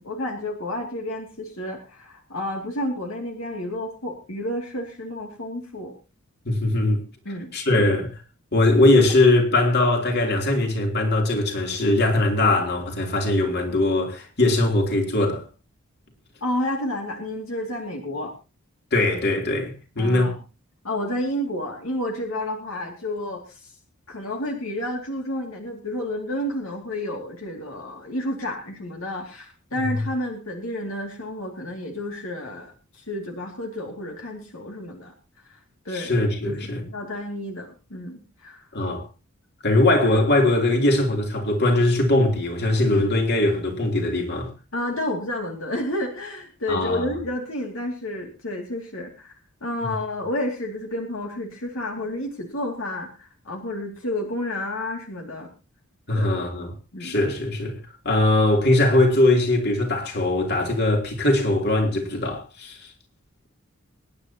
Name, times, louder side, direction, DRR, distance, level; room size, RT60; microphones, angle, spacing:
voice 1, 0.0-5.9 7.2-7.5 16.4-18.3 20.0-20.4 20.8-23.7 24.1-35.1 35.5-38.7 44.7-49.3 49.6-55.5 56.1-56.3 56.9-57.2, left 1 dB, 75° left, 2.5 m, -30 dB
voice 2, 6.4-7.0 7.5-8.1 8.5-15.4 18.9-20.3 35.9-36.8 38.7-39.0 39.6-44.5 46.7-47.0 49.8-49.9 56.1-56.7 57.0-57.8 58.0-62.8, left 2 dB, 50° left, 3.3 m, -21 dB
24.5 x 10.5 x 2.9 m
head